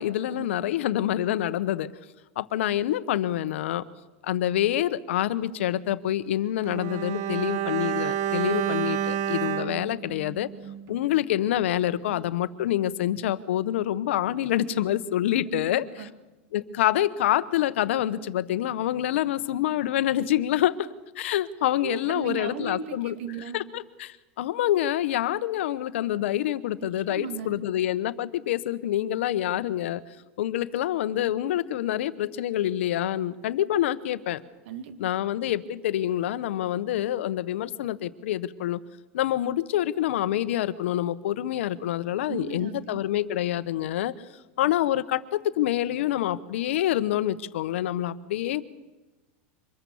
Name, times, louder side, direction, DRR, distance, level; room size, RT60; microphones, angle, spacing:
voice 1, 0.0-1.9 2.4-3.8 4.2-10.5 10.9-15.8 16.5-20.9 21.2-23.1 23.5-30.0 30.4-34.4 35.0-38.8 39.1-44.1 44.6-48.6, left 12 dB, 80° left, 15 dB, 1.0 m, -26 dB
Bowed string instrument, 6.6-11.1 11.3-11.5, right 10 dB, 50° right, 1.2 m, -30 dB
voice 2, 15.5-16.1 21.8-23.6 26.9-27.6 34.6-35.1 42.3-43.0, right 7 dB, 65° right, 9 dB, 2.4 m, -37 dB
24.5 x 20.5 x 7.1 m, 1.1 s
supercardioid pair, 140°, 7 cm